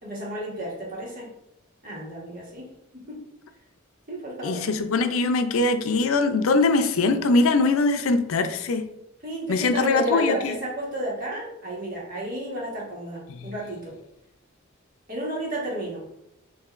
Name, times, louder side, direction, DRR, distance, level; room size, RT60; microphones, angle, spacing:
voice 1, 0.0-1.3 1.8-2.7 3.0-3.2 4.1-4.7 9.2-14.0 15.1-16.0, right 1 dB, 45° right, -4 dB, 1.4 m, -32 dB
voice 2, 4.4-8.8 9.5-10.6 13.3-13.5, left 3 dB, 90° left, 8 dB, 0.5 m, -22 dB
6.5 x 2.6 x 2.5 m, 0.83 s
head